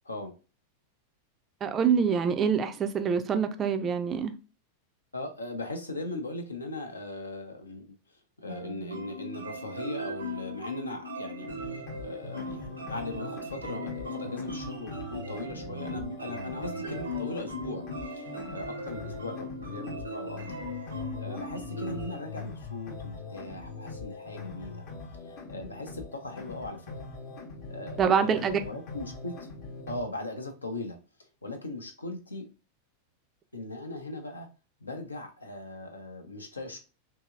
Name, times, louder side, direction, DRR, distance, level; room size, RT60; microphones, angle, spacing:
voice 1, 1.6-4.3 28.0-28.6, right 6 dB, 25° right, 0.3 m, -25 dB
voice 2, 5.1-20.4 21.1-24.8 25.2-27.1 27.7-29.5 29.9-31.0 31.4-32.5 33.5-34.5 34.8-36.8, left 2 dB, 80° left, 0.6 m, -39 dB
sound 1, 8.5-22.2, equal, 80° right, 0.7 m, -39 dB
sound 2, 11.4-30.0, left 3 dB, 45° left, 0.7 m, -42 dB
2.9 x 2.7 x 2.4 m
figure-of-eight pair, 90°, 0 cm